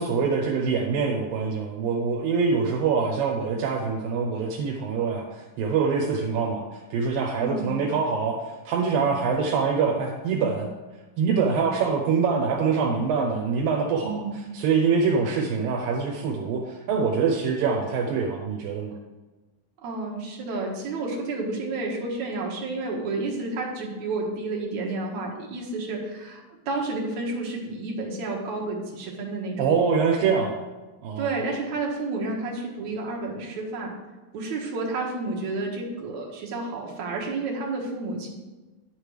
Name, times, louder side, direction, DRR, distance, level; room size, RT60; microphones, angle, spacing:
voice 1, 0.0-8.4 8.7-10.7 11.2-14.2 14.5-19.0 29.6-30.6 31.0-31.3, right 5 dB, 85° right, 0 dB, 2.6 m, -24 dB
voice 2, 7.4-7.7 14.0-14.4 19.8-29.7 31.2-33.9 34.3-38.3, right 3 dB, 60° right, -1 dB, 2.7 m, -30 dB
10.5 x 8.6 x 3.3 m, 1.2 s
omnidirectional pair, 4.1 m